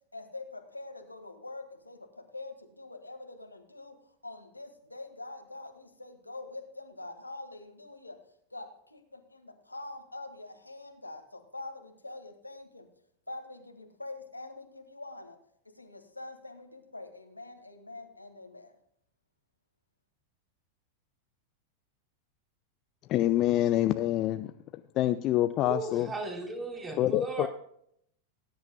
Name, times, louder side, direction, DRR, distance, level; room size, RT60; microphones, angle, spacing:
voice 1, 0.1-8.2 8.5-12.9 13.3-15.4 15.7-18.7, left 2 dB, 85° left, 5 dB, 1.7 m, -45 dB
voice 2, 23.1-24.5 25.0-26.1 27.0-27.5, left 14 dB, 35° left, 11 dB, 0.5 m, -26 dB
voice 3, 25.6-27.5, right 3 dB, 15° right, 1 dB, 3.2 m, -36 dB
19.0 x 10.5 x 2.2 m, 0.70 s
figure-of-eight pair, 90°, 0 cm